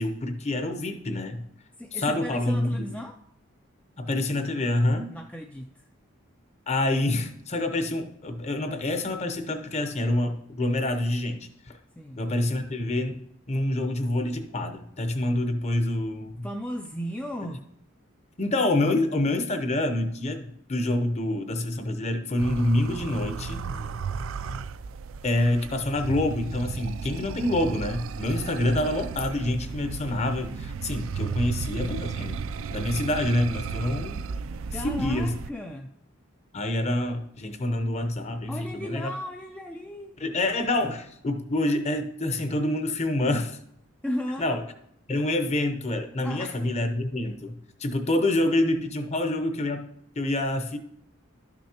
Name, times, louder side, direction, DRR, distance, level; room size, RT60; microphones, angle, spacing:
voice 1, 0.0-1.4 1.9-2.8 4.0-5.2 6.7-11.8 12.2-13.2 13.5-16.5 18.4-23.7 25.2-32.4 32.7-34.2 34.7-35.3 36.5-39.1 40.2-43.6 44.4-44.6 45.1-49.9 50.2-50.8, left 1 dB, 35° left, 0.7 m, -27 dB
voice 2, 1.8-3.2 5.1-5.9 12.0-12.2 16.4-17.6 23.7-24.0 34.7-35.9 38.5-40.2 44.0-44.5 46.2-46.6, equal, 5° left, 0.3 m, -35 dB
sound 1, 22.4-35.5, right 5 dB, 70° right, 0.4 m, -34 dB
12.0 x 6.2 x 2.9 m
head